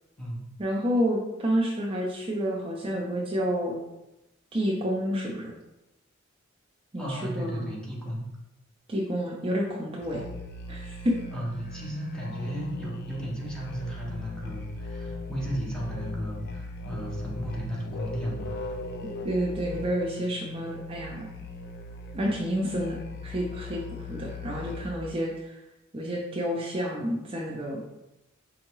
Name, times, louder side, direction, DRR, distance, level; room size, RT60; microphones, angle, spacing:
voice 1, 0.6-3.8 4.5-5.5 6.9-7.7 8.9-10.2 10.7-11.2 19.2-21.3 22.1-23.0 23.2-25.6 25.9-27.8, equal, 25° right, -3 dB, 0.5 m, -29 dB
voice 2, 7.0-8.3 11.3-18.8, equal, 5° left, -5 dB, 0.8 m, -34 dB
Musical instrument, 10.0-25.0, left 2 dB, 50° left, 0.4 m, -39 dB
4.4 x 2.8 x 3.0 m, 0.92 s
head